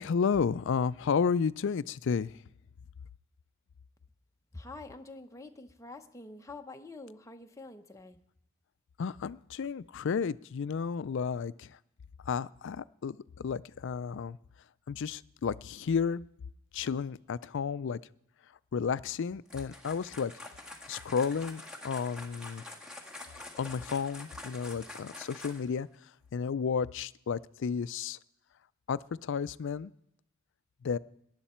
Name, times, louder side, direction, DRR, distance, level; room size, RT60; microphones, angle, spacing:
voice 1, 0.0-2.3 9.0-11.8 12.3-14.4 14.9-16.2 16.7-18.0 18.7-20.3 20.9-22.6 23.6-25.9 26.3-28.2 28.9-29.9 30.8-31.0, left 6 dB, 60° left, 17 dB, 0.4 m, -32 dB
voice 2, 4.5-8.2, left 2 dB, 15° left, 5 dB, 0.8 m, -46 dB
sound 1, 19.5-25.8, left 2 dB, 5° right, 1.5 m, -46 dB
18.0 x 11.0 x 4.4 m, 0.82 s
head